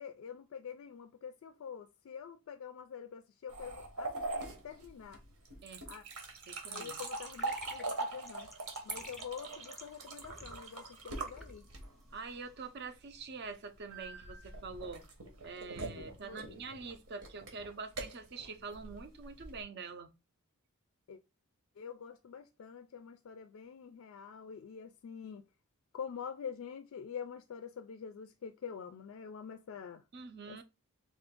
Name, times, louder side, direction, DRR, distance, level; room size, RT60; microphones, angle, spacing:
voice 1, 0.0-5.2 5.9-6.0 6.7-8.5 8.8-11.7 15.9-16.6 21.1-21.2 21.8-25.4 25.9-30.0 30.4-30.6, left 7 dB, 65° left, 0.3 m, -46 dB
sound 1, 3.5-12.1 13.9-19.6, right 3 dB, 75° right, 1.1 m, -42 dB
voice 2, 6.5-7.0 12.1-15.0 15.4-20.1 30.1-30.6, right 4 dB, 50° right, 0.5 m, -45 dB
sound 2, 7.4-12.7, left 1 dB, ahead, 0.4 m, -53 dB
3.6 x 2.5 x 3.6 m
head